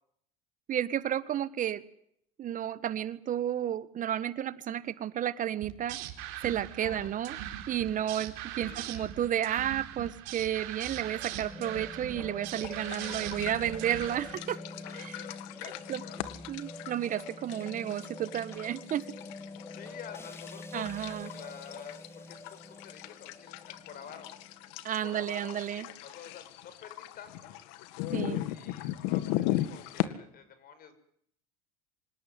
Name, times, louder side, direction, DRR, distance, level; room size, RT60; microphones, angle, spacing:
voice 1, 0.7-1.8 2.4-6.0 6.4-7.3 7.7-14.6 15.1-15.2 15.6-16.0 16.5-19.0 20.7-21.3 24.8-25.9 28.1-28.4, right 10 dB, 45° right, 15 dB, 1.5 m, -32 dB
sound 1, 5.6-14.3, right 12 dB, 70° right, 4.1 m, -41 dB
voice 2, 6.8-7.1 8.6-9.1 12.9-13.7 14.0-16.3 19.7-24.3 25.0-27.5 28.2-30.9, left 8 dB, 50° left, 12 dB, 6.5 m, -49 dB
sound 2, 10.9-25.3, left 2 dB, 15° left, 2.0 m, -46 dB
sound 3, 12.6-30.1, left 15 dB, 70° left, 2.1 m, -38 dB
26.5 x 18.0 x 9.5 m, 0.70 s
hypercardioid pair, 85°, 19 cm